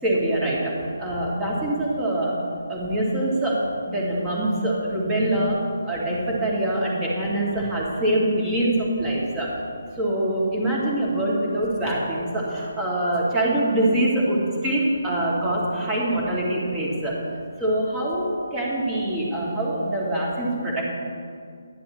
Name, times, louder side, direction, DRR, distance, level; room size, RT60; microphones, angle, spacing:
voice 1, 0.0-0.7 1.0-2.4 2.7-3.6 3.9-5.6 5.8-9.5 10.0-17.2 17.6-20.8, right 1 dB, 15° right, -5 dB, 2.3 m, -24 dB
11.0 x 10.0 x 3.1 m, 2.2 s
figure-of-eight pair, 145°, 0 cm